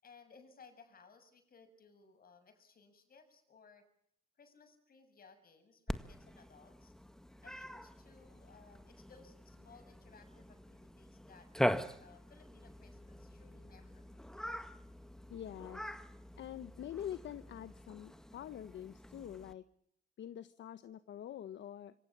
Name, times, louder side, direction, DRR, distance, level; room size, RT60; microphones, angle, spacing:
voice 1, 0.0-3.9 4.4-6.9 7.4-14.3, left 5 dB, 50° left, 8 dB, 7.3 m, -62 dB
Cat, 5.9-19.5, equal, 5° left, 1.7 m, -43 dB
voice 2, 15.3-15.8 16.4-19.6 20.2-21.9, left 10 dB, 70° left, 13 dB, 1.2 m, -45 dB
26.5 x 24.5 x 7.5 m, 0.69 s
cardioid pair, 90°, 20 cm